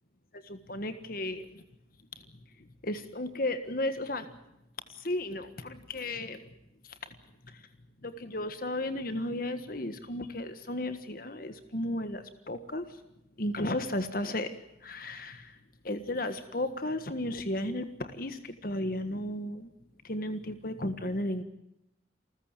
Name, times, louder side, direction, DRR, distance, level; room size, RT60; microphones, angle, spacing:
voice 1, 0.3-1.6 2.8-4.3 4.9-6.4 7.5-7.6 8.0-12.9 13.4-14.5 14.8-15.5 15.8-19.7 20.0-21.4, left 1 dB, 50° left, 9 dB, 1.6 m, -34 dB
28.5 x 15.0 x 9.1 m, 0.86 s
head